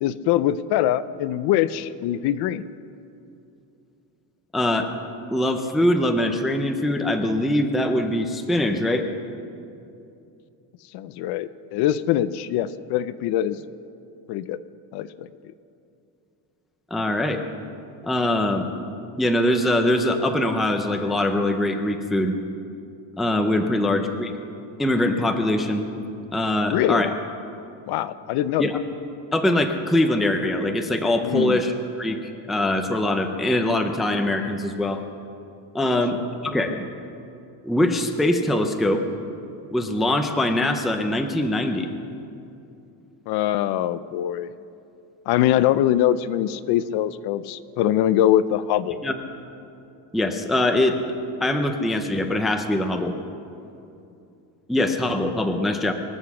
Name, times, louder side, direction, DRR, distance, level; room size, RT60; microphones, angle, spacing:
voice 1, 0.0-2.7 10.9-13.6 14.3-14.6 14.9-15.3 26.7-27.1 27.9-28.7 31.2-31.6 35.9-36.0 43.3-44.5 45.3-49.0, left 12 dB, 55° left, 15 dB, 0.6 m, -23 dB
voice 2, 4.5-4.9 5.3-9.1 16.9-17.4 18.0-18.7 19.2-22.4 23.2-24.4 24.8-25.9 26.3-27.1 28.6-28.8 29.3-32.2 32.5-35.0 35.7-36.9 37.6-39.0 39.7-41.9 49.0-49.1 50.1-51.1 51.4-53.1 54.7-55.9, left 1 dB, ahead, 5 dB, 0.4 m, -22 dB
24.0 x 8.0 x 7.0 m, 2.7 s
cardioid pair, 170°, 46 cm